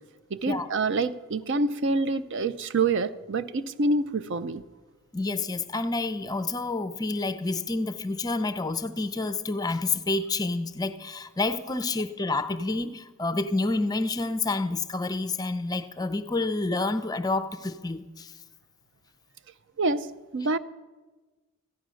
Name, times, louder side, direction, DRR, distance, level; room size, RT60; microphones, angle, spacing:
voice 1, 0.3-4.6 19.8-20.1 20.3-20.6, right 3 dB, 55° right, 13 dB, 0.5 m, -26 dB
voice 2, 5.1-18.3, left 3 dB, 20° left, 11 dB, 0.5 m, -29 dB
14.0 x 10.5 x 6.3 m, 1.3 s
head